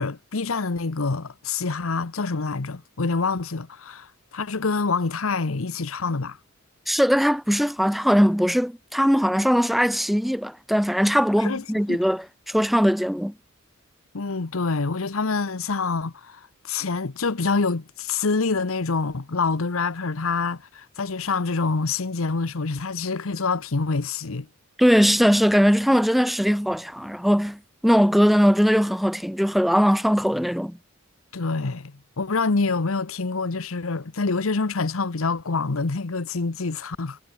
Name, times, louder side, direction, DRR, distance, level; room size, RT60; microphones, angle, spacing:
voice 1, 0.0-6.4 11.4-12.0 14.1-24.5 31.3-37.2, left 4 dB, 80° left, 1.0 m, -26 dB
voice 2, 6.9-13.3 24.8-30.8, equal, ahead, 1.1 m, -20 dB
head